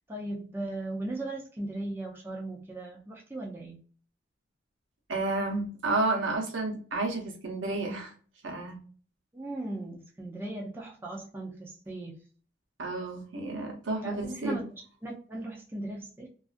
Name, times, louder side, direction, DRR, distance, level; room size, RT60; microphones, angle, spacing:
voice 1, 0.1-3.8 9.3-12.2 14.0-16.3, right 2 dB, 10° right, -2 dB, 0.4 m, -37 dB
voice 2, 5.1-8.1 8.4-8.8 12.8-14.6, right 2 dB, 85° right, 1 dB, 0.8 m, -31 dB
2.4 x 2.3 x 2.4 m, 0.41 s
head